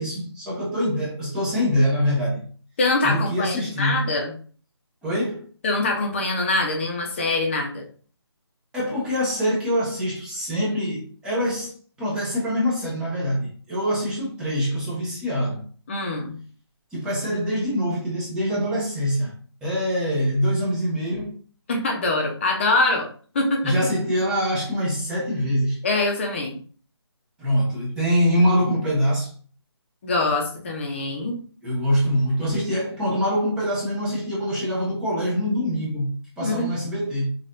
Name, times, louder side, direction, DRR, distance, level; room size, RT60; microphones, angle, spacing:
voice 1, 0.0-2.4 3.0-4.0 5.0-5.4 8.7-15.6 16.9-19.3 19.6-21.4 23.6-25.8 27.4-29.3 31.6-37.3, equal, 5° right, 0.8 m, -24 dB
voice 2, 2.8-4.3 5.6-7.8 15.9-16.4 21.7-23.1 23.3-23.7 25.8-26.6 30.0-31.4 36.4-36.7, left 2 dB, 25° left, 0.9 m, -24 dB
5.5 x 2.7 x 2.6 m
hypercardioid pair, 165°, 14 cm